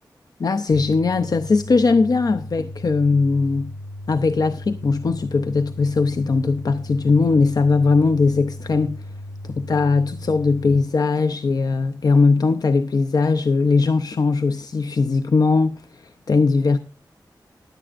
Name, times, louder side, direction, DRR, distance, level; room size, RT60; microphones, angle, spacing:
voice 1, 0.4-3.7 4.1-9.1 9.4-16.8, left 4 dB, 60° left, 0.6 m, -19 dB
sound 1, 0.7-10.7, left 1 dB, 40° left, 3.5 m, -36 dB
15.5 x 11.0 x 2.5 m
wide cardioid pair, 110°, 8 cm